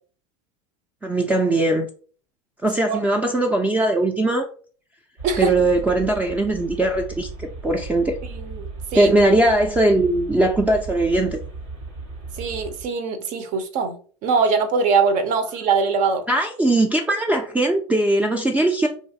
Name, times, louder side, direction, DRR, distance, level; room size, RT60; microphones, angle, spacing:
voice 1, 1.0-1.9 2.6-4.5 5.4-8.2 8.9-11.4 16.3-18.9, right 1 dB, 10° right, 2 dB, 0.4 m, -20 dB
sound 1, 5.2-12.9, right 3 dB, 85° right, 1.2 m, -36 dB
voice 2, 8.3-8.7 8.9-9.1 12.4-16.2, right 5 dB, 50° right, 8 dB, 0.6 m, -22 dB
3.0 x 2.5 x 2.7 m, 0.43 s
hypercardioid pair, 95°, 16 cm